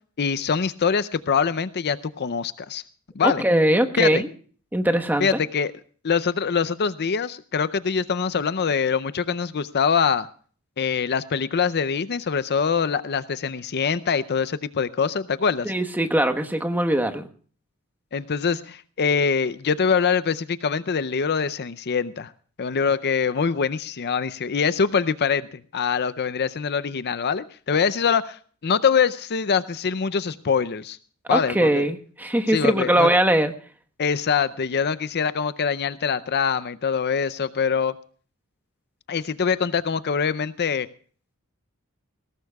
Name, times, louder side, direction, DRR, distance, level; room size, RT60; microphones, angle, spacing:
voice 1, 0.2-2.8 3.2-3.4 4.0-4.2 5.2-5.7 6.0-10.3 10.8-15.7 18.1-22.3 22.6-25.5 25.7-31.0 31.3-31.9 32.5-33.1 34.0-37.9 39.1-40.9, left 6 dB, 50° left, 14 dB, 0.6 m, -24 dB
voice 2, 3.2-4.3 4.7-5.4 15.6-17.2 31.3-33.5, right 1 dB, 10° right, 6 dB, 1.2 m, -21 dB
21.0 x 17.5 x 2.3 m, 0.43 s
head